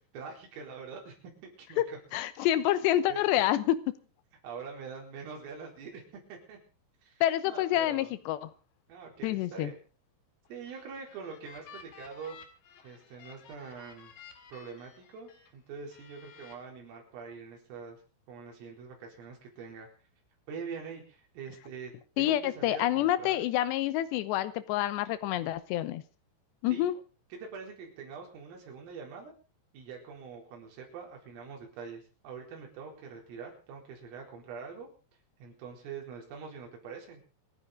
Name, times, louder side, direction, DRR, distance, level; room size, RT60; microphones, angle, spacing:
voice 1, 0.1-1.1 1.4-2.0 2.4-2.5 3.1-3.3 4.4-6.0 6.3-6.6 7.0-7.1 7.5-8.1 8.9-9.8 10.5-12.4 12.8-14.1 14.5-18.0 18.3-19.9 20.5-23.4 26.7-26.9 27.3-29.3 29.7-34.9 35.4-37.2, right 5 dB, 90° right, 0 dB, 6.9 m, -44 dB
voice 2, 2.1-4.0 7.2-8.5 9.2-9.7 22.2-26.0 26.6-27.0, left 13 dB, 75° left, 14 dB, 2.8 m, -28 dB
sound 1, 10.4-15.5 15.9-16.5, left 6 dB, 55° left, 3.1 m, -53 dB
28.0 x 9.6 x 3.9 m, 0.34 s
omnidirectional pair, 5.8 m